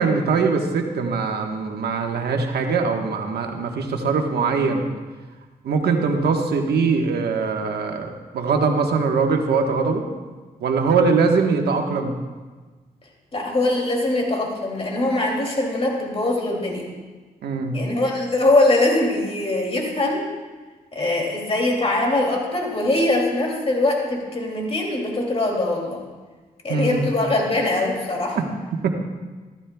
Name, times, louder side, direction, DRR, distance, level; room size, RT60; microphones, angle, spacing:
voice 1, 0.0-4.9 5.6-10.0 10.6-12.1 17.4-17.8 26.7-27.1 28.3-28.4 28.8-28.9, right 4 dB, 80° right, 3 dB, 1.3 m, -22 dB
voice 2, 13.3-16.8 17.7-20.3 20.9-26.0 26.6-28.4, left 2 dB, 35° left, -1 dB, 2.7 m, -22 dB
15.0 x 14.0 x 2.3 m, 1.3 s
cardioid pair, 75°, 16 cm